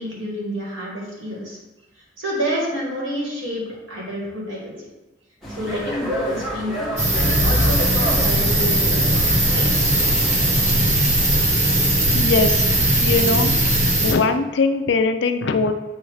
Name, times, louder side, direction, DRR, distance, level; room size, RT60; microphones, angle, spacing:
voice 1, 0.0-1.6 2.2-4.7 5.5-9.7, equal, 80° right, -4 dB, 2.1 m, -28 dB
sound 1, 5.4-10.8, equal, ahead, 1.1 m, -32 dB
sound 2, 7.0-14.1, right 1 dB, 35° right, 1.0 m, -18 dB
voice 2, 12.1-12.7 13.0-13.5 14.0-15.7, left 4 dB, 65° left, 8 dB, 0.5 m, -20 dB
7.4 x 2.8 x 4.8 m, 1.1 s
head